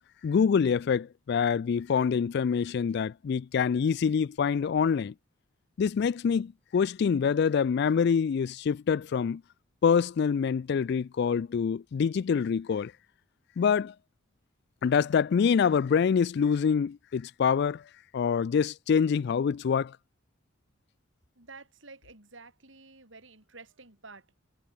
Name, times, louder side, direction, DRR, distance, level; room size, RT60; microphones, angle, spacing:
voice 1, 0.2-5.1 5.8-9.4 9.8-12.9 13.6-13.9 14.8-17.8 18.1-19.9, left 6 dB, 55° left, 0.3 m, -25 dB
voice 2, 21.4-24.5, right 3 dB, 70° right, 6.4 m, -51 dB
head